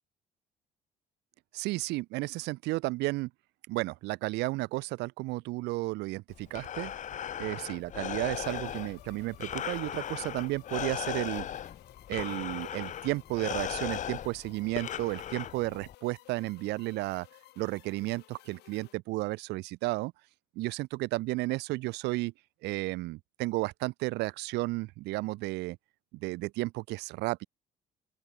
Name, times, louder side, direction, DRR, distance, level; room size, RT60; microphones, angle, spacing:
voice 1, 1.5-3.3 3.7-6.9 7.4-11.5 12.1-17.3 17.6-20.1 20.5-22.3 22.6-25.8 26.1-27.5, right 21 dB, 90° right, 1.0 m, -33 dB
Breathing, 6.3-15.9, left 10 dB, 45° left, 1.1 m, -38 dB
sound 1, 8.3-18.9, left 16 dB, 75° left, 1.7 m, -57 dB
open air
cardioid pair, 110°, 17 cm